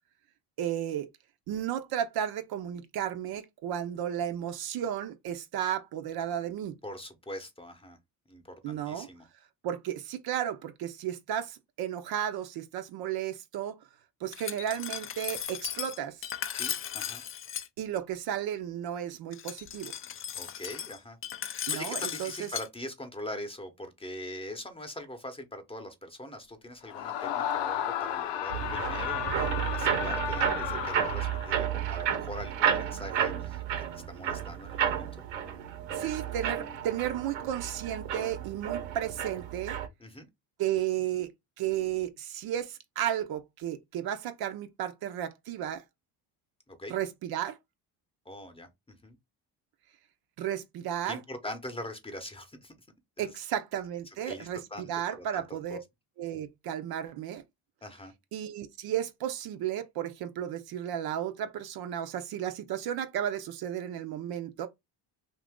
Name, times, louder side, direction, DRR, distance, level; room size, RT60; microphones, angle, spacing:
voice 1, 0.6-1.1 1.5-6.7 8.6-9.1 9.6-13.7 14.2-16.3 17.8-19.9 21.7-22.5 35.9-39.8 40.6-41.3 41.6-45.8 46.9-47.6 50.4-51.2 53.2-55.8 56.2-57.4 58.3-64.7, right 10 dB, 55° right, 0.6 m, -33 dB
voice 2, 6.8-8.0 8.3-9.3 16.5-17.2 20.4-21.2 21.7-33.6 33.9-35.1 40.0-40.3 46.7-46.9 48.3-49.2 51.0-52.7 53.2-53.3 54.3-55.8 57.8-58.1, left 1 dB, 15° left, 0.8 m, -42 dB
Glass, 14.3-17.7 19.3-22.7, left 9 dB, 30° left, 0.4 m, -37 dB
Screaming, 26.9-31.7, left 10 dB, 70° left, 0.6 m, -33 dB
sound 1, 28.5-39.9, right 9 dB, 85° right, 0.9 m, -32 dB
2.8 x 2.5 x 3.5 m
supercardioid pair, 90°, 44 cm